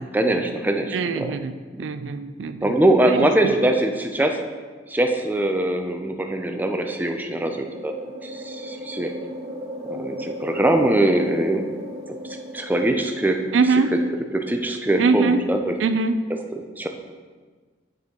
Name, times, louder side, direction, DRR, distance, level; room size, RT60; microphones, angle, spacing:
voice 1, 0.0-1.4 1.7-1.8 2.6-4.4 4.9-7.9 8.2-9.1 9.9-11.7 12.2-13.4 14.3-15.8 16.5-16.9, right 1 dB, 10° right, 4 dB, 0.5 m, -22 dB
voice 2, 0.9-2.7 3.1-3.5 13.5-13.9 15.0-15.4 15.8-16.1, right 4 dB, 90° right, 10 dB, 0.4 m, -22 dB
sound 1, 6.8-14.4, equal, 60° right, 1.1 m, -36 dB
7.1 x 6.1 x 3.7 m, 1.4 s
head